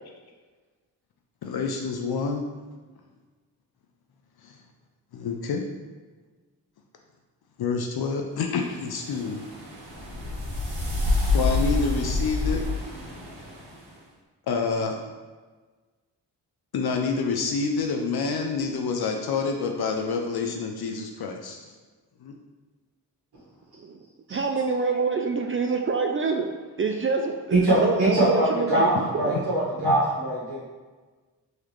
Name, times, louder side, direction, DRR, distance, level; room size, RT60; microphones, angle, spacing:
voice 1, 1.4-2.4 4.4-4.6 5.1-5.6 7.6-9.4 11.3-12.6 14.5-15.0 16.7-21.6 22.2-22.3 29.8-30.0, left 4 dB, 60° left, 2 dB, 0.6 m, -27 dB
sound 1, 8.6-13.9, left 2 dB, 80° right, 1.5 m, -28 dB
voice 2, 24.3-26.5 26.8-29.4, right 4 dB, 30° right, 3 dB, 0.4 m, -26 dB
voice 3, 27.5-30.6, right 1 dB, 60° right, -8 dB, 1.4 m, -23 dB
3.8 x 3.1 x 3.1 m, 1.4 s
supercardioid pair, 45°, 43 cm